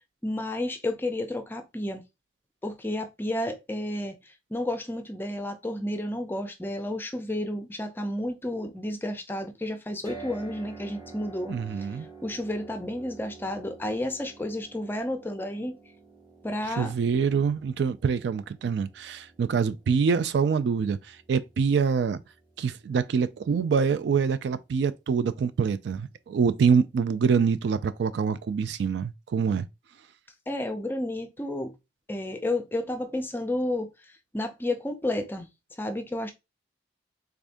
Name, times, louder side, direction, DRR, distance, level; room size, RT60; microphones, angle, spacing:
voice 1, 0.2-2.0 2.6-11.6 12.2-15.8 16.4-16.9 30.5-31.7 32.1-33.9 34.3-35.5 35.8-36.3, left 1 dB, 10° left, 0.4 m, -31 dB
sound 1, 10.1-24.2, right 4 dB, 20° right, 0.9 m, -49 dB
voice 2, 11.5-12.1 16.8-22.2 22.6-29.7, right 6 dB, 65° right, 0.3 m, -25 dB
3.5 x 3.5 x 2.5 m
head